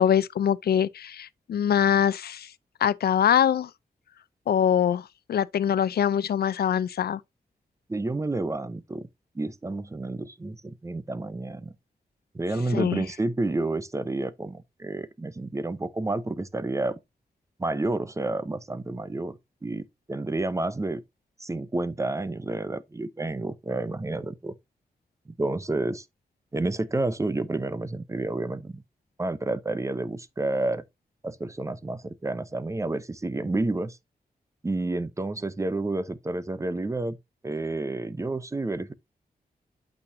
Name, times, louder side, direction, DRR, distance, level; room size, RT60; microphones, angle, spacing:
voice 1, 0.0-2.5 2.8-3.7 4.5-7.2 12.7-13.0, left 9 dB, 85° left, 0.5 m, -23 dB
voice 2, 7.9-9.1 9.3-11.7 12.3-17.0 17.6-21.0 21.4-24.5 25.4-26.0 26.5-28.8 29.2-30.8 31.2-34.0 34.6-37.2 37.4-38.9, right 2 dB, 20° right, 0.7 m, -30 dB
8.6 x 6.4 x 2.7 m
wide cardioid pair, 120°, 16 cm